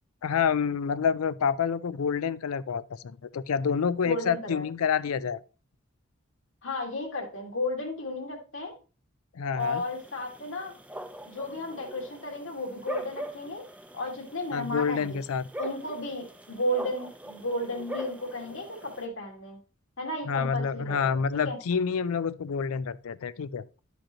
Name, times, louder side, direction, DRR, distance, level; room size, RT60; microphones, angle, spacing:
voice 1, 0.2-5.4 9.4-9.8 14.5-15.4 20.3-23.6, left 6 dB, 90° left, 0.4 m, -28 dB
voice 2, 4.0-4.6 6.6-8.7 9.5-10.7 11.3-13.6 13.9-15.2 15.6-19.6 20.0-21.6, left 1 dB, 65° left, 2.0 m, -33 dB
sound 1, 9.6-19.1, right 1 dB, 5° right, 0.6 m, -43 dB
11.5 x 5.1 x 2.9 m
head